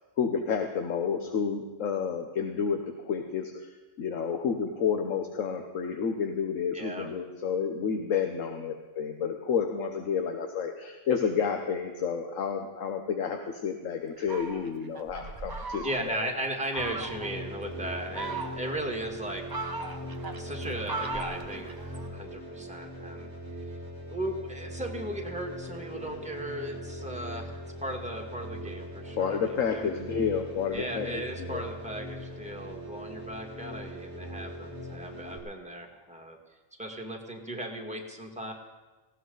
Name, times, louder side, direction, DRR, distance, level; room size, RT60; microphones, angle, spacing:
voice 1, 0.2-3.7 4.0-16.3 29.1-31.6, left 6 dB, 75° left, 5 dB, 1.3 m, -30 dB
voice 2, 6.7-7.1 15.8-19.4 20.4-23.3 24.1-29.9 30.7-36.4 36.8-38.5, right 1 dB, 5° right, 1 dB, 1.8 m, -37 dB
Fowl, 14.2-16.2 16.7-17.3 17.9-18.9 19.3-22.1, right 3 dB, 25° right, 0.5 m, -38 dB
sound 1, 16.8-35.4, equal, 15° left, 3.1 m, -40 dB
18.5 x 16.5 x 3.9 m, 1.2 s
omnidirectional pair, 1.4 m